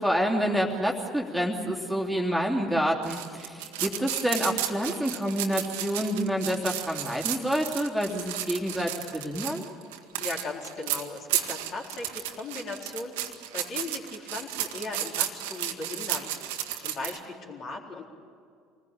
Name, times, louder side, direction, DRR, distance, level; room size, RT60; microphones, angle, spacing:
voice 1, 0.0-9.6, equal, ahead, -2 dB, 3.1 m, -28 dB
sound 1, 3.0-17.2, right 12 dB, 65° right, 1.6 m, -33 dB
voice 2, 10.2-16.3 16.8-18.0, left 3 dB, 45° left, -1 dB, 4.1 m, -38 dB
26.5 x 20.5 x 8.9 m, 2.3 s
figure-of-eight pair, 65°, 0 cm